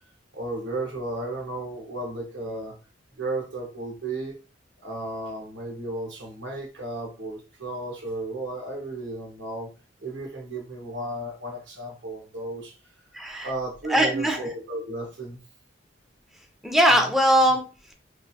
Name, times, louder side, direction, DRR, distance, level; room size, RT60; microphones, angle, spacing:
voice 1, 0.3-2.7 3.1-4.4 4.8-9.7 10.0-12.7 13.4-15.4, right 2 dB, 80° right, 1 dB, 1.0 m, -34 dB
voice 2, 13.1-13.5 13.9-14.4 16.6-17.6, equal, ahead, 3 dB, 0.4 m, -20 dB
3.1 x 2.4 x 2.6 m, 0.33 s
head